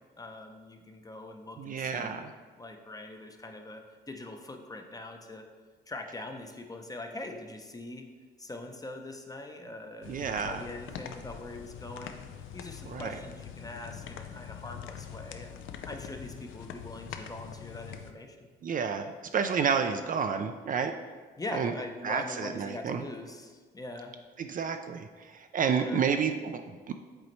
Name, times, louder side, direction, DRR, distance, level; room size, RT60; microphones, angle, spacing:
voice 1, 0.2-2.2 2.6-5.5 5.9-8.1 8.4-12.2 12.5-18.5 21.4-24.2 25.7-26.0, left 2 dB, 20° left, 4 dB, 0.6 m, -42 dB
voice 2, 1.6-2.3 10.1-10.6 12.8-13.2 18.6-20.9 21.5-21.7 22.0-23.0 24.4-26.9, right 6 dB, 45° right, 7 dB, 0.4 m, -30 dB
sound 1, 10.0-18.1, left 8 dB, 80° left, 0.5 m, -43 dB
7.8 x 4.1 x 3.1 m, 1.5 s
cardioid pair, 90°, 20 cm